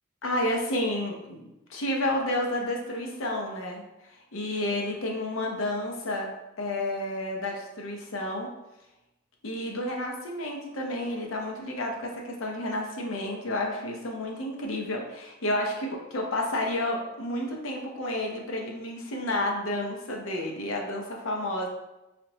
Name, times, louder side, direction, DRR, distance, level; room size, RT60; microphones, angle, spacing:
voice 1, 0.2-3.8 4.3-8.5 9.4-21.7, left 1 dB, 80° left, 0 dB, 0.7 m, -31 dB
3.3 x 3.0 x 2.8 m, 0.97 s
head